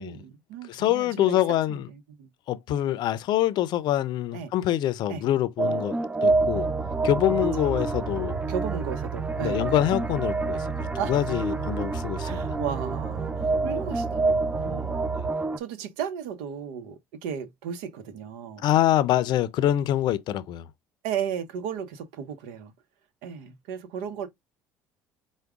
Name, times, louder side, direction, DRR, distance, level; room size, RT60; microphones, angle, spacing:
voice 1, 0.0-1.4 1.7-2.3 2.7-3.0 4.3-4.5 5.1-5.2 7.4-7.8 8.5-9.7 11.0-11.1 12.2-15.0 15.6-18.6 21.0-22.7 23.2-24.3, right 8 dB, 80° right, 0.8 m, -35 dB
voice 2, 0.7-1.9 2.5-6.7 7.0-8.4 9.4-10.7 11.1-12.6 18.6-20.7, left 12 dB, 60° left, 0.5 m, -25 dB
sound 1, 5.6-15.6, right 3 dB, 15° right, 0.4 m, -28 dB
sound 2, 6.3-15.3, right 6 dB, 55° right, 1.2 m, -35 dB
4.7 x 2.2 x 3.5 m
supercardioid pair, 75°, 8 cm